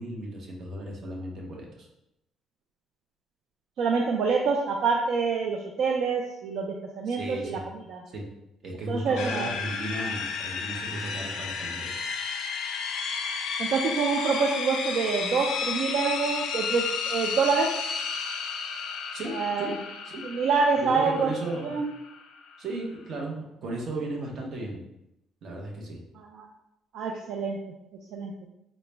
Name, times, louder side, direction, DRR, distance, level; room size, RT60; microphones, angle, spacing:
voice 1, 0.0-1.9 7.1-7.6 8.1-8.3 8.6-12.0 19.1-19.7 20.0-20.2 20.8-21.7 22.6-24.8 25.4-26.0, right 2 dB, 40° right, -1 dB, 0.7 m, -35 dB
voice 2, 3.8-7.6 7.9-8.0 8.9-9.5 13.6-17.7 19.3-19.8 20.2-21.3 21.6-21.9 26.2-26.5 26.9-27.6 28.1-28.3, right 5 dB, 55° right, 1 dB, 0.3 m, -26 dB
sound 1, 9.2-23.2, left 6 dB, 70° left, 0.4 m, -33 dB
3.8 x 2.0 x 3.3 m, 0.85 s
cardioid pair, 170°, 0 cm